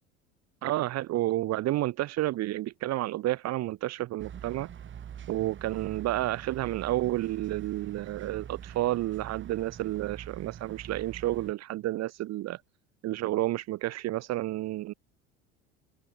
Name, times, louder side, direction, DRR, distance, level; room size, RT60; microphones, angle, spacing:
voice 1, 0.6-4.7 5.3-12.6 13.0-14.9, right 16 dB, 55° right, 1.2 m, -30 dB
sound 1, 4.2-11.5, right 9 dB, 40° right, 2.8 m, -44 dB
supercardioid pair, 100°, 31 cm